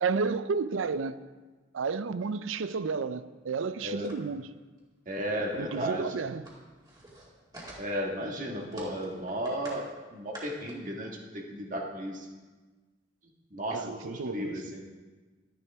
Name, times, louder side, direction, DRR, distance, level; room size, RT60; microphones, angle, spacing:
voice 1, 0.0-1.2 1.7-4.5 5.6-6.5 13.7-14.7, right 5 dB, 85° right, 0.5 m, -31 dB
voice 2, 3.8-4.1 5.1-6.2 7.8-12.3 13.5-14.8, equal, 40° right, 1.5 m, -34 dB
sound 1, 4.0-4.4 4.8-4.9 5.1-5.2 5.5-5.6 5.9-8.2 8.6-9.8 10.1-10.7, right 1 dB, 20° right, 2.2 m, -47 dB
12.0 x 10.5 x 3.5 m
head